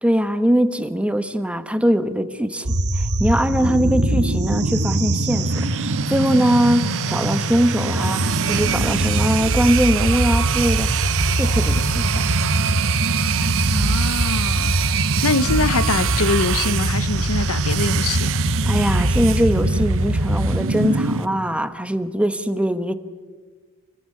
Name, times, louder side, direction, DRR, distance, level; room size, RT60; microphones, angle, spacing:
voice 1, 0.0-11.0 11.4-12.3 18.6-22.9, equal, 5° right, 1.1 m, -21 dB
sound 1, 2.7-21.2, right 1 dB, 80° right, 1.5 m, -22 dB
sound 2, 5.3-21.3, right 11 dB, 65° right, 1.0 m, -27 dB
voice 2, 13.7-14.8 15.2-18.4, left 3 dB, 70° left, 0.9 m, -24 dB
28.5 x 19.5 x 8.5 m
head